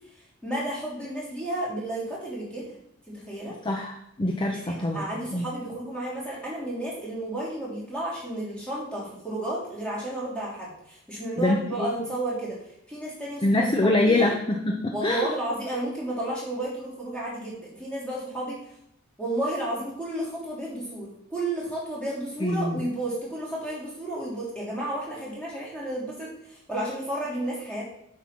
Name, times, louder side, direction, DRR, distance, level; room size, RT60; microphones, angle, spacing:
voice 1, 0.4-2.8 3.1-3.6 4.6-12.6 12.9-13.7 14.0-14.3 14.9-18.7 19.2-27.9, right 1 dB, 5° left, -8 dB, 3.2 m, -32 dB
voice 2, 3.6-5.5 11.4-11.9 13.4-15.3 22.4-22.8, left 2 dB, 25° left, 2 dB, 0.7 m, -25 dB
7.8 x 4.6 x 5.9 m, 0.78 s
head